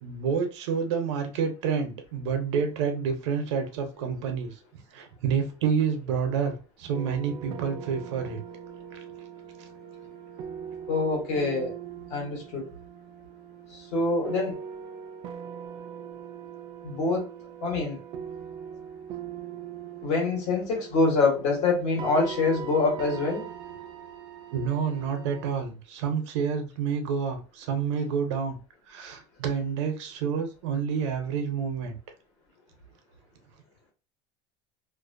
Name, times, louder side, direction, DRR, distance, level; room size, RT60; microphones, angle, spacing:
voice 1, 0.0-4.5 4.9-8.4 24.5-28.6 28.9-31.9, right 6 dB, 85° right, 0.7 m, -28 dB
sound 1, 6.9-25.5, right 8 dB, 35° right, 0.3 m, -41 dB
voice 2, 10.9-11.7 12.1-12.7 13.7-14.6 16.8-17.3 17.6-18.0 20.0-23.5, left 3 dB, 55° left, 1.2 m, -25 dB
2.6 x 2.1 x 2.5 m
cardioid pair, 160°, 15 cm